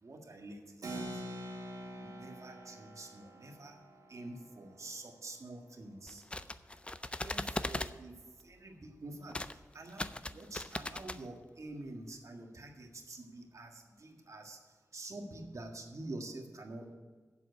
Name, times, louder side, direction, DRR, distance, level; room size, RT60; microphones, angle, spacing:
voice 1, 0.0-0.6 0.9-1.1 1.9-3.8 4.1-6.2 7.2-8.1 8.4-9.4 9.7-14.6 14.9-16.9, right 2 dB, 60° right, 3 dB, 1.7 m, -47 dB
Keyboard (musical), 0.8-6.8, right 1 dB, 80° right, 2.0 m, -47 dB
sound 1, 6.1-7.9 9.3-9.5 9.9-11.2, left 2 dB, 20° left, 0.4 m, -39 dB
7.6 x 7.3 x 8.2 m, 1.4 s
wide cardioid pair, 70°, 6 cm